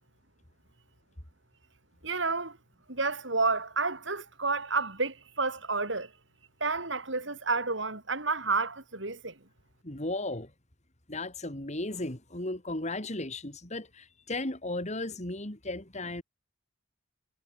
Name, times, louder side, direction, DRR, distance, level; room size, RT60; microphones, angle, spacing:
voice 1, 2.0-2.6 2.9-6.1 6.6-9.4, right 3 dB, 70° right, 5.4 m, -30 dB
voice 2, 9.8-10.5 11.1-16.2, left 2 dB, 35° left, 3.4 m, -35 dB
head